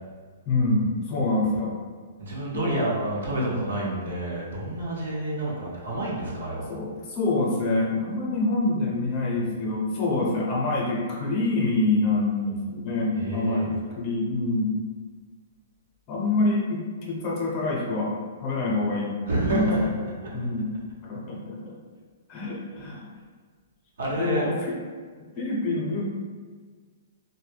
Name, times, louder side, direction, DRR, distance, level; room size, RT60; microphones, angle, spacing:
voice 1, 0.5-1.8 2.5-2.9 3.3-3.6 6.7-14.7 16.1-18.1 18.4-19.2 19.5-19.9 20.3-20.7 21.0-21.8 22.3-23.1 24.1-24.8 25.4-26.0, left 2 dB, 35° left, -4 dB, 0.7 m, -26 dB
voice 2, 2.2-6.7 13.1-13.7 19.3-19.8 24.0-24.5, right 1 dB, 80° right, -5 dB, 0.9 m, -29 dB
2.1 x 2.1 x 3.3 m, 1.5 s
hypercardioid pair, 140°, 0 cm